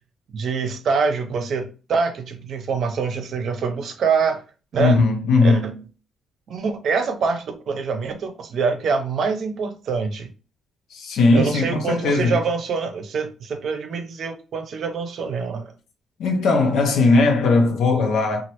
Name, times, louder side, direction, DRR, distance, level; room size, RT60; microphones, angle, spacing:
voice 1, 0.3-4.4 4.7-5.0 5.4-5.6 6.5-10.3 11.3-15.7, right 5 dB, 60° right, 0.6 m, -25 dB
voice 2, 4.8-5.8 10.9-12.4 16.2-18.4, left 3 dB, 80° left, 0.7 m, -18 dB
3.0 x 2.4 x 2.9 m
cardioid pair, 90°, 0 cm